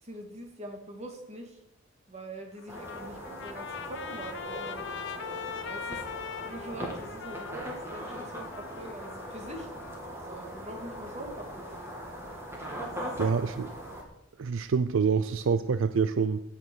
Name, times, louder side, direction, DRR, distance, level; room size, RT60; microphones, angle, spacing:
voice 1, 0.0-1.6 2.1-6.1 6.4-9.7 10.3-11.9 12.9-13.2, right 1 dB, 35° right, 2 dB, 2.4 m, -43 dB
Trumpet, 2.5-10.0, left 6 dB, 65° left, 1.0 m, -41 dB
sound 1, 2.7-14.0, equal, 15° right, 2.4 m, -40 dB
voice 2, 13.2-13.7 14.4-16.4, right 5 dB, 75° right, 12 dB, 0.5 m, -26 dB
16.5 x 6.0 x 6.3 m, 0.85 s
head